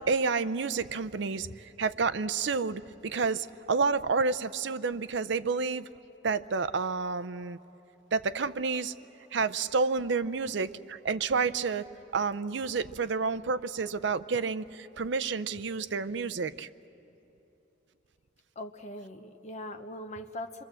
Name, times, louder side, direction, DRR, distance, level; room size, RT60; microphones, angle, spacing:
voice 1, 0.0-5.9 6.2-7.6 8.1-8.9 9.3-16.7, right 4 dB, 70° right, 14 dB, 0.5 m, -30 dB
voice 2, 18.5-20.6, left 1 dB, 35° left, 6 dB, 1.0 m, -41 dB
27.5 x 24.0 x 7.6 m, 2.9 s
head